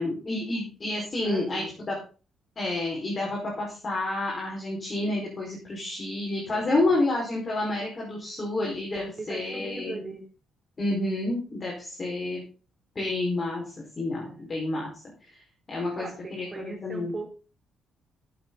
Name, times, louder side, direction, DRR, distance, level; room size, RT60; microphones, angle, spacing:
voice 1, 0.0-1.9 2.5-10.0 10.8-12.4 12.9-13.6 14.0-14.9 15.7-17.1, left 2 dB, 35° left, -3 dB, 5.2 m, -29 dB
voice 2, 1.2-1.7 3.2-3.3 6.5-6.9 9.3-10.3 14.2-14.5 16.0-17.3, right 3 dB, 30° right, 3 dB, 3.4 m, -40 dB
15.0 x 8.5 x 4.1 m, 0.36 s
cardioid pair, 90°, 0 cm